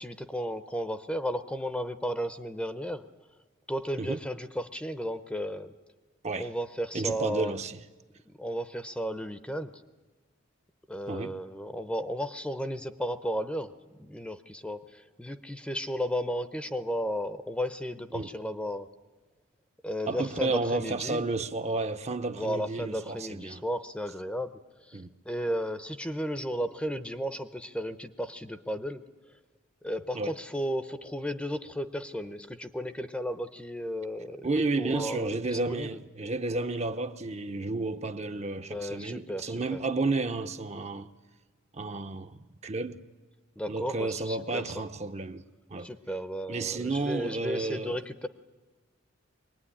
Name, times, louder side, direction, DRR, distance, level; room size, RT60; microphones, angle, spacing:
voice 1, 0.0-3.0 3.7-5.7 6.3-7.5 8.3-9.7 10.9-13.7 14.0-18.9 19.8-21.2 22.3-29.0 29.8-34.5 34.8-36.0 38.6-39.8 43.6-44.8 45.8-48.3, equal, 5° left, 0.7 m, -34 dB
voice 2, 6.9-7.8 11.1-11.4 18.1-18.3 20.1-23.6 24.9-25.1 30.1-30.3 34.4-41.1 41.7-43.0 43.7-45.4 45.7-45.9 46.5-48.0, right 3 dB, 30° right, 0.7 m, -31 dB
23.5 x 20.0 x 9.9 m
head